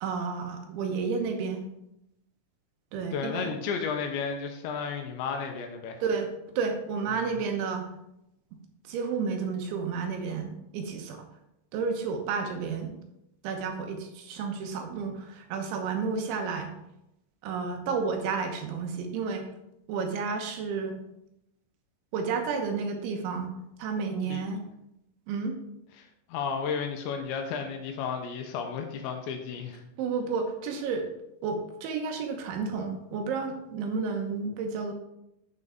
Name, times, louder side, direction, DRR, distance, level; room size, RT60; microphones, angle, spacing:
voice 1, 0.0-1.6 2.9-3.5 6.0-6.3 6.6-7.9 8.8-11.3 11.7-13.0 13.4-16.7 17.4-19.5 19.9-21.0 22.1-23.5 23.8-24.6 25.3-25.5 30.0-31.1 31.4-34.9, right 5 dB, 75° right, 4 dB, 3.4 m, -31 dB
voice 2, 3.1-6.0 7.1-7.3 24.3-24.6 26.0-29.8, left 6 dB, 80° left, 4 dB, 3.0 m, -33 dB
8.8 x 8.0 x 3.8 m, 0.84 s
omnidirectional pair, 5.5 m